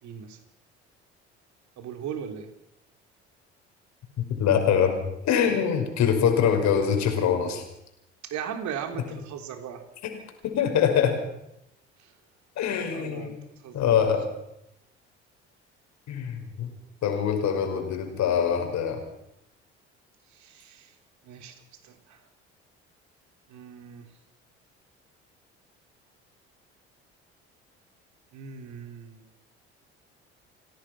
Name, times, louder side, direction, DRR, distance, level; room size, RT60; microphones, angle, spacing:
voice 1, 0.0-0.4 1.8-2.5 8.2-9.8 12.0-12.1 12.9-13.4 13.6-13.9 20.3-20.9 21.2-22.3 23.5-24.1 28.3-29.3, right 8 dB, 60° right, 6 dB, 3.6 m, -38 dB
voice 2, 4.2-5.0 5.2-7.6 10.4-11.2 12.6-13.4 13.7-14.3 16.1-16.7 17.0-19.0, left 8 dB, 55° left, 4 dB, 5.7 m, -24 dB
28.5 x 17.0 x 6.1 m, 0.82 s
hypercardioid pair, 55°, 33 cm